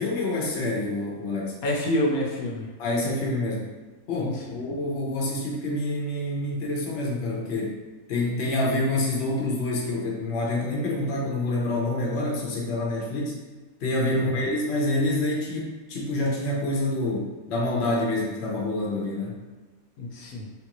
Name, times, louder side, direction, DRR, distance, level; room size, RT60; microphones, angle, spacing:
voice 1, 0.0-1.5 2.8-3.6 4.1-7.8 8.1-13.4 13.8-19.4, left 1 dB, 55° left, -3 dB, 0.9 m, -27 dB
voice 2, 1.6-2.7 4.2-4.6 14.1-14.5 20.0-20.5, left 1 dB, 80° left, -1 dB, 1.1 m, -28 dB
3.6 x 2.5 x 2.9 m, 1.3 s
omnidirectional pair, 1.5 m